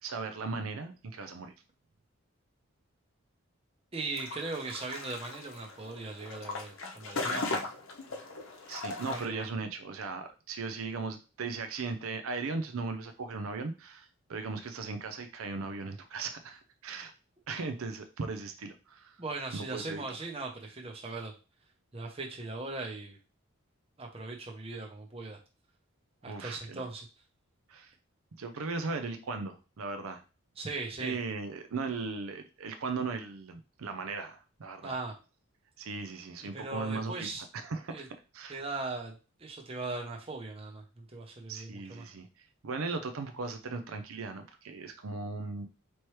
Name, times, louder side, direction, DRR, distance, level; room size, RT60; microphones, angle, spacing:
voice 1, 0.0-1.5 8.7-17.1 17.5-19.2 19.5-20.0 26.2-26.9 27.7-27.9 28.4-30.2 31.0-35.0 35.8-38.1 38.3-38.6 41.5-42.3 42.6-45.6, right 4 dB, 75° right, 7 dB, 0.5 m, -37 dB
voice 2, 3.9-7.6 9.1-9.5 19.2-21.3 21.9-23.2 24.0-25.4 26.2-27.1 30.6-31.2 34.8-35.1 36.5-37.4 37.9-38.1 38.5-39.1 39.4-42.1, right 3 dB, 25° right, 1 dB, 0.7 m, -39 dB
sound 1, 4.2-9.3, left 3 dB, 65° left, 0.8 m, -38 dB
4.4 x 3.1 x 3.1 m, 0.32 s
head